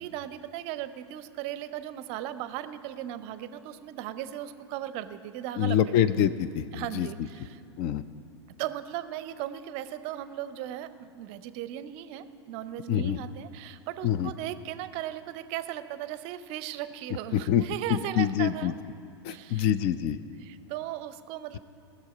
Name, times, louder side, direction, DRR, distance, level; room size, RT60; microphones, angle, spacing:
voice 1, 0.0-6.0 6.7-7.6 8.5-18.7 19.3-19.7 20.4-21.6, right 12 dB, 45° right, 13 dB, 0.6 m, -37 dB
voice 2, 5.6-7.3 7.8-8.0 12.9-13.2 14.0-14.3 17.3-17.6 17.9-18.7 19.2-20.2, left 10 dB, 40° left, 15 dB, 0.5 m, -26 dB
18.5 x 6.8 x 5.0 m, 2.4 s
hypercardioid pair, 100°, 15 cm